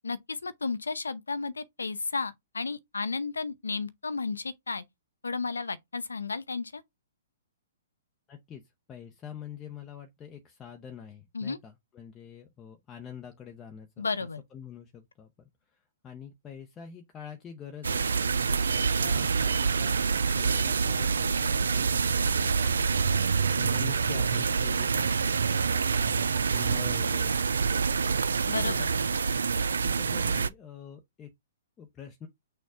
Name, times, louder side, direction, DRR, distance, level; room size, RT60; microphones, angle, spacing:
voice 1, 0.0-4.8 5.2-6.8 11.3-11.6 14.0-14.4 28.5-28.9, left 4 dB, 85° left, 0.6 m, -33 dB
voice 2, 8.3-8.6 8.9-28.3 28.6-28.9 29.8-31.3 31.8-32.3, left 8 dB, 20° left, 0.7 m, -46 dB
sound 1, 17.8-30.5, right 5 dB, 75° right, 0.3 m, -26 dB
6.2 x 2.3 x 3.7 m
hypercardioid pair, 125°, 0 cm